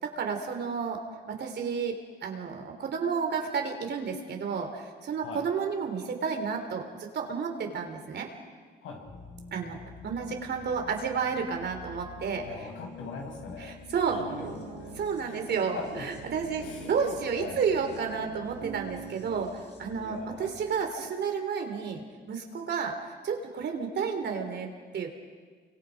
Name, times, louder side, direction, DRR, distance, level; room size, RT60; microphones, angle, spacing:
voice 1, 0.0-1.0 1.3-8.3 9.5-9.8 10.0-12.4 13.6-14.2 15.0-25.1, right 6 dB, 60° right, 4 dB, 3.8 m, -31 dB
sound 1, 9.0-21.1, left 5 dB, 60° left, 6.9 m, -49 dB
voice 2, 12.4-13.8 14.1-15.0 15.2-15.4 15.7-16.0 16.6-17.6 19.9-20.5, left 3 dB, 80° left, 1 dB, 6.2 m, -41 dB
sound 2, 14.1-19.5, right 7 dB, 75° right, 3.3 m, -44 dB
29.0 x 25.0 x 5.2 m, 1.5 s
cardioid pair, 90°, 20 cm